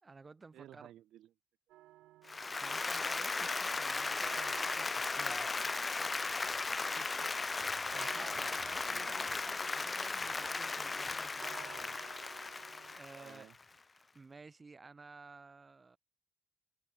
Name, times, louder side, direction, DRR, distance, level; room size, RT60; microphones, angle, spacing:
voice 1, 0.0-0.9 2.6-5.5 7.9-9.4 9.7-12.0 12.9-13.5 14.1-16.0, right 4 dB, 15° right, 1.3 m, -53 dB
voice 2, 0.5-1.3 6.8-7.3 8.8-9.5 13.1-13.6, right 12 dB, 60° right, 3.1 m, -56 dB
sound 1, 1.7-13.0, right 16 dB, 85° right, 1.5 m, -56 dB
Applause, 2.3-13.6, left 3 dB, 15° left, 0.3 m, -36 dB
cardioid pair, 175°, 0 cm